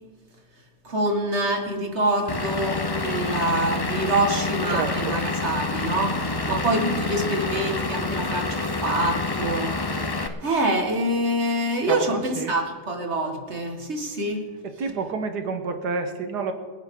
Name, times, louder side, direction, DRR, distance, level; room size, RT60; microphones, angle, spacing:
voice 1, 0.8-10.1 10.4-14.4, right 1 dB, 45° right, 3 dB, 2.0 m, -26 dB
Vehicle / Engine, 2.3-10.3, left 3 dB, 30° left, 0.4 m, -27 dB
voice 2, 4.7-5.2 11.8-12.5 14.6-16.5, right 4 dB, 85° right, 7 dB, 1.8 m, -29 dB
27.0 x 10.0 x 3.8 m, 1.5 s
omnidirectional pair, 1.7 m